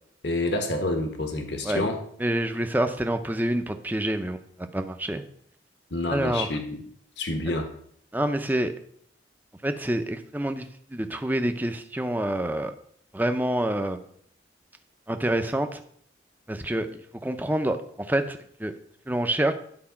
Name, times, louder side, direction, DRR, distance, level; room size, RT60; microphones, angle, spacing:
voice 1, 0.2-2.0 5.9-6.8 7.2-7.7, left 2 dB, 60° left, 5 dB, 1.3 m, -28 dB
voice 2, 2.2-4.4 4.7-5.2 6.1-6.5 8.1-8.7 9.6-10.7 10.9-12.7 13.1-14.0 15.1-15.8 16.5-16.9 17.2-17.8 18.1-18.7 19.1-19.5, right 1 dB, 10° right, 7 dB, 0.6 m, -27 dB
11.0 x 4.7 x 5.8 m, 0.64 s
head